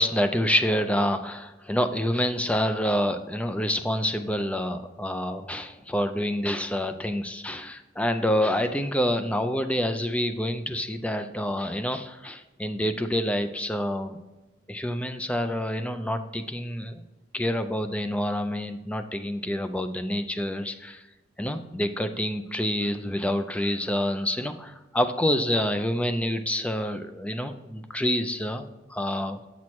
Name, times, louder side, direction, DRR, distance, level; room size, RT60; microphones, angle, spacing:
voice 1, 0.0-14.2 14.7-17.0 17.3-21.0 21.4-29.5, equal, 5° left, 9 dB, 0.4 m, -27 dB
8.5 x 6.0 x 3.1 m, 1.1 s
head